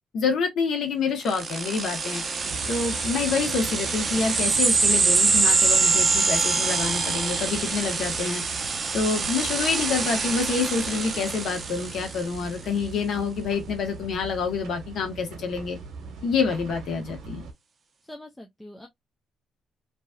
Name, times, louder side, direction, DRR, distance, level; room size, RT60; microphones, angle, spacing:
voice 1, 0.1-2.2 2.7-8.4 8.9-15.8 16.2-17.5, left 5 dB, 70° left, 1.3 m, -27 dB
sound 1, 1.3-12.4, right 4 dB, 40° right, 0.7 m, -25 dB
sound 2, 2.4-17.5, right 4 dB, 75° right, 1.0 m, -41 dB
voice 2, 18.1-18.9, left 1 dB, 10° left, 0.7 m, -43 dB
3.0 x 2.7 x 2.2 m
cardioid pair, 90°, 0 cm